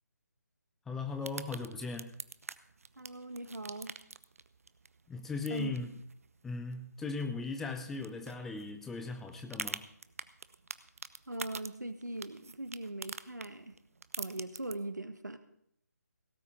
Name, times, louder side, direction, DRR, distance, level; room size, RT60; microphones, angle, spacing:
voice 1, 0.9-2.2 5.1-5.9 6.4-9.8, left 4 dB, 5° left, 5 dB, 0.5 m, -38 dB
sound 1, 1.1-14.7, right 4 dB, 55° right, 0.7 m, -47 dB
voice 2, 3.0-4.0 5.5-5.7 11.3-13.8 14.2-15.4, right 2 dB, 80° right, 10 dB, 1.6 m, -40 dB
17.5 x 5.9 x 8.5 m, 0.72 s
figure-of-eight pair, 150°, 9 cm